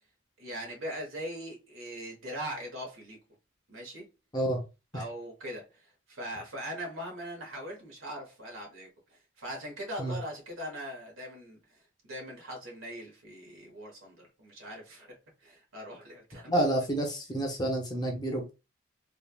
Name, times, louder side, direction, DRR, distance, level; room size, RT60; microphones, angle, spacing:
voice 1, 0.4-3.2 3.7-4.0 4.9-8.9 9.4-11.8 12.0-15.1 15.4-16.5, equal, 85° right, 1.1 m, -41 dB
voice 2, 16.5-18.5, right 1 dB, 20° left, 0.5 m, -29 dB
3.3 x 2.2 x 2.2 m
head